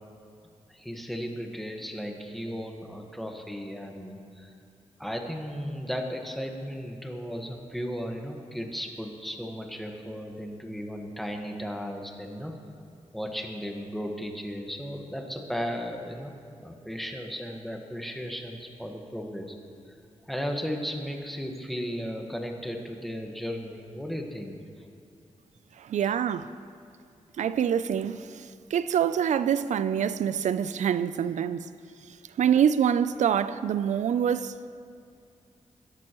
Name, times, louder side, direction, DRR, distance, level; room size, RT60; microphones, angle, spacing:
voice 1, 0.7-4.5 5.0-12.5 13.1-16.3 16.6-19.5 19.9-20.0 20.3-24.9 26.0-26.1, equal, ahead, 1.5 m, -35 dB
voice 2, 25.8-26.5 27.4-31.7 32.4-34.6, right 8 dB, 85° right, 0.4 m, -25 dB
21.5 x 11.5 x 3.1 m
wide cardioid pair, 100°, 12 cm